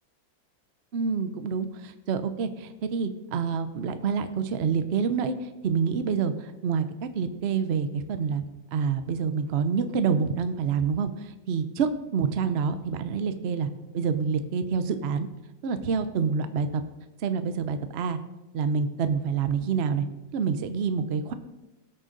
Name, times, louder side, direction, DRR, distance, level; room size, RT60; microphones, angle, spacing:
voice 1, 0.9-8.4 8.7-13.7 13.9-15.3 15.6-16.8 17.2-18.2 18.5-20.1 20.3-21.3, right 6 dB, 85° right, 10 dB, 0.5 m, -27 dB
18.5 x 6.4 x 3.9 m, 1.0 s
omnidirectional pair, 2.1 m